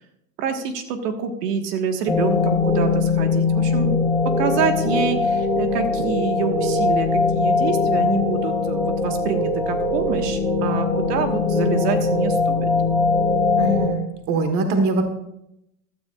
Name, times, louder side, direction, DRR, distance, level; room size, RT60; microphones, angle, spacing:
voice 1, 0.4-4.0 4.4-12.7, right 6 dB, 75° right, 6 dB, 1.6 m, -26 dB
sound 1, 2.1-13.9, left 3 dB, ahead, 0.3 m, -21 dB
voice 2, 13.6-15.0, right 3 dB, 35° right, 6 dB, 1.4 m, -22 dB
16.0 x 12.5 x 2.4 m, 0.80 s
supercardioid pair, 165°, 48 cm